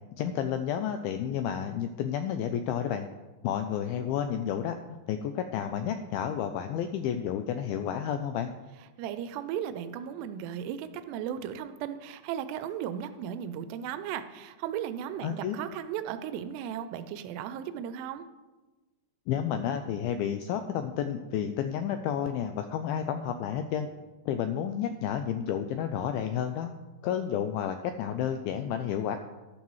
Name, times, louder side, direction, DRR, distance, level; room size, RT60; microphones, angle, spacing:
voice 1, 0.2-3.1 3.4-4.8 5.1-8.5 15.2-15.6 19.3-23.9 24.3-26.7 27.0-29.2, left 9 dB, 85° left, 8 dB, 2.1 m, -31 dB
voice 2, 9.0-18.2, right 9 dB, 85° right, 10 dB, 2.7 m, -36 dB
13.0 x 11.5 x 3.1 m, 1.2 s
omnidirectional pair, 4.8 m